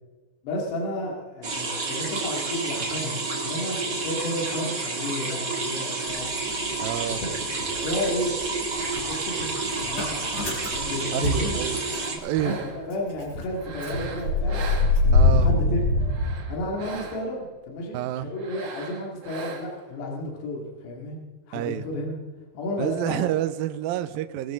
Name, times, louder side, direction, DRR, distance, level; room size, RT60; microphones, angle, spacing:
voice 1, 0.4-6.3 7.2-7.3 7.7-8.3 8.7-9.5 9.8-11.6 12.4-14.6 15.2-15.8 16.5-21.2 21.5-22.2 22.5-23.3, left 1 dB, 70° left, -1 dB, 4.5 m, -32 dB
sound 1, 1.4-12.2, right 3 dB, 30° right, 2.3 m, -30 dB
Motor vehicle (road) / Engine starting, 6.1-7.3 7.6-12.2 12.6-12.7 12.9-17.0, left 3 dB, 25° left, 5.7 m, -25 dB
voice 2, 6.8-7.2 11.1-11.8 12.1-12.6 15.1-15.5 17.9-18.3 21.5-21.9 22.8-24.5, right 13 dB, 85° right, 10 dB, 2.1 m, -28 dB
sound 2, 11.5-13.0 13.6-15.4 16.0-17.5 18.3-19.9, right 4 dB, 60° right, 1.6 m, -40 dB
22.0 x 13.0 x 3.8 m, 1.3 s
omnidirectional pair, 5.1 m